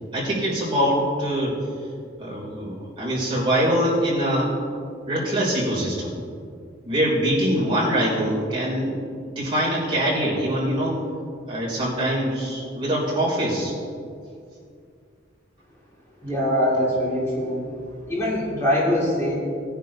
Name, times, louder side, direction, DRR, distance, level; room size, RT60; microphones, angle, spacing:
voice 1, 0.1-1.6 2.2-4.5 5.1-6.1 6.8-9.0 9.3-11.0 11.5-13.8, equal, 25° right, -6 dB, 3.2 m, -23 dB
voice 2, 16.2-17.6 18.1-19.4, equal, 15° left, -7 dB, 2.4 m, -22 dB
19.5 x 10.0 x 2.8 m, 2.3 s
head